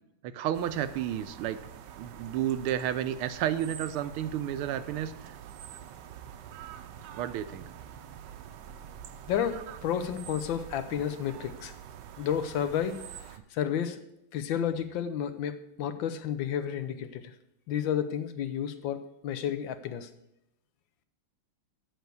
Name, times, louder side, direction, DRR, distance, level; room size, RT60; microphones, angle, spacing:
voice 1, 0.2-1.6 2.0-5.3 7.1-7.7, right 10 dB, 90° right, 11 dB, 1.6 m, -31 dB
sound 1, 0.5-13.4, right 9 dB, 70° right, 1.1 m, -46 dB
voice 2, 9.3-11.7 12.2-14.0 14.3-17.3 17.7-20.1, left 9 dB, 70° left, 10 dB, 1.4 m, -31 dB
8.2 x 6.2 x 8.1 m, 0.83 s
omnidirectional pair, 2.3 m